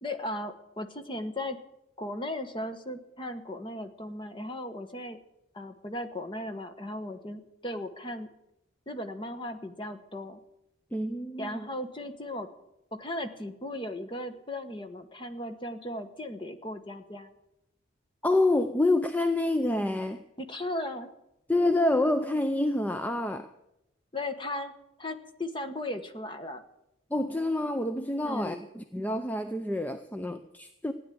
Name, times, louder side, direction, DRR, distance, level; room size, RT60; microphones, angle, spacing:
voice 1, 0.0-1.6 2.0-5.2 5.5-8.3 8.9-10.4 11.4-12.5 12.9-17.3 20.4-21.1 24.1-24.7 25.0-26.6 28.2-28.7, left 1 dB, 25° left, 1.2 m, -36 dB
voice 2, 10.9-11.7 18.2-20.2 21.5-23.5 27.1-30.9, left 2 dB, 10° left, 0.6 m, -27 dB
16.0 x 10.0 x 9.2 m
head